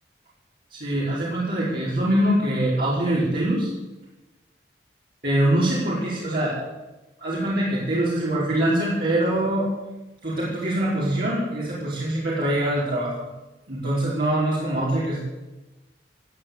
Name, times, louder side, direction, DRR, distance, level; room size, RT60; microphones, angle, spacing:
voice 1, 0.7-3.7 5.2-6.6 7.2-9.7 10.2-13.2 13.7-15.2, right 1 dB, 55° right, -8 dB, 4.7 m, -23 dB
17.5 x 9.0 x 8.6 m, 1.1 s
head